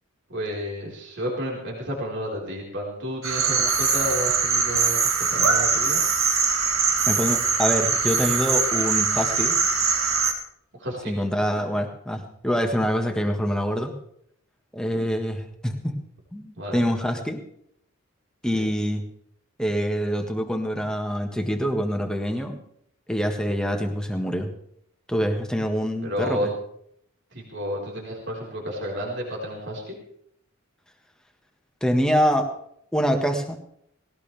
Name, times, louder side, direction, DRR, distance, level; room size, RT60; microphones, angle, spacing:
voice 1, 0.3-6.1 10.7-11.2 16.6-16.8 18.5-18.7 26.0-26.5 27.3-29.9, equal, 55° right, -3 dB, 4.6 m, -31 dB
sound 1, 3.2-10.3, right 5 dB, 75° right, 2.3 m, -22 dB
voice 2, 7.1-9.6 11.0-13.9 14.7-16.0 16.3-17.4 18.4-19.0 19.6-22.6 23.1-24.5 25.1-26.5 31.8-32.5 32.9-33.6, equal, 5° left, 4 dB, 1.6 m, -25 dB
19.5 x 18.0 x 3.5 m, 0.71 s
head